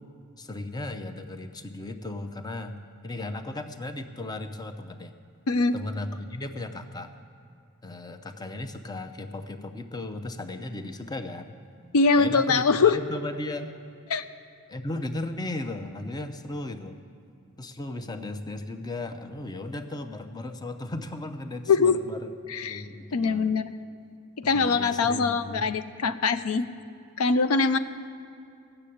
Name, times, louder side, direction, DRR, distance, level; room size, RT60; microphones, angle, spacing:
voice 1, 0.4-2.7 3.0-5.1 5.7-7.1 7.8-11.5 12.2-13.7 14.7-17.0 17.6-22.4 22.6-23.5 24.4-25.7, left 2 dB, 20° left, 8 dB, 0.6 m, -36 dB
voice 2, 5.5-5.8 11.9-13.0 14.1-14.2 21.7-22.0 22.5-22.8 23.1-23.7 24.4-26.7 27.2-27.8, left 4 dB, 80° left, 12 dB, 0.5 m, -22 dB
15.0 x 6.7 x 8.5 m, 2.5 s
head